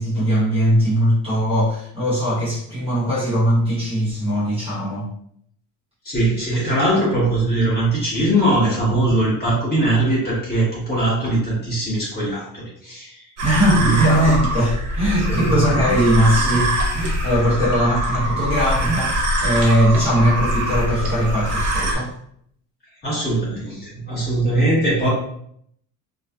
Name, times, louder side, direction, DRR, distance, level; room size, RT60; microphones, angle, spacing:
voice 1, 0.0-5.1 13.4-22.1, equal, 15° right, -10 dB, 0.8 m, -20 dB
voice 2, 6.0-13.2 13.8-14.0 15.3-15.6 23.0-25.1, right 1 dB, 25° left, -8 dB, 1.2 m, -21 dB
sound 1, 13.4-21.9, right 1 dB, 55° right, 0.8 m, -23 dB
2.5 x 2.3 x 2.2 m, 0.68 s
cardioid pair, 165°, 37 cm